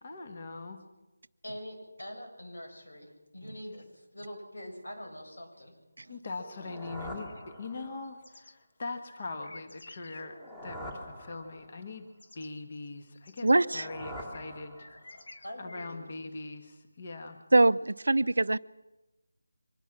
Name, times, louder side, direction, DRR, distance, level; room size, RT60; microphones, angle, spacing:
voice 1, 0.0-0.8 6.1-10.4 10.6-12.1 12.3-14.9 15.6-17.4, left 3 dB, 30° left, 6 dB, 1.6 m, -41 dB
voice 2, 1.4-5.7 14.5-14.6 15.1-16.1, equal, 90° left, 2 dB, 8.0 m, -44 dB
sound 1, 6.3-8.2 10.1-11.9 13.4-15.2, equal, 15° left, 2.1 m, -45 dB
sound 2, 7.0-8.5 9.1-10.3 11.9-12.0 12.2-16.2, left 2 dB, 65° left, 1.5 m, -53 dB
voice 3, 13.4-13.9 17.5-18.6, right 2 dB, 80° right, 16 dB, 0.7 m, -23 dB
24.0 x 20.5 x 6.1 m, 1.0 s
figure-of-eight pair, 175°, 0 cm